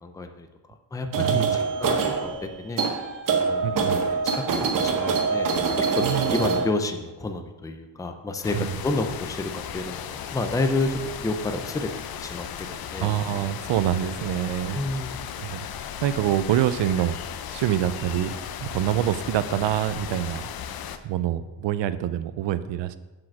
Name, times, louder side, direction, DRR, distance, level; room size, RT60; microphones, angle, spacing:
voice 1, 0.0-2.8 3.4-5.5 5.8-11.9 12.1-13.1 14.7-15.2, left 2 dB, 10° left, 6 dB, 0.4 m, -30 dB
sound 1, 1.1-6.7, right 5 dB, 45° right, 1.0 m, -24 dB
voice 2, 1.1-1.6 3.6-4.0 6.0-6.3 8.5-8.7 13.0-14.8 15.4-15.7 16.0-17.2 17.5-18.3 18.6-20.5 21.0-23.0, right 11 dB, 70° right, 14 dB, 0.6 m, -26 dB
sound 2, 8.4-21.0, left 8 dB, 55° left, 0.6 m, -36 dB
7.6 x 5.0 x 6.0 m, 1.1 s
cardioid pair, 145°, 45 cm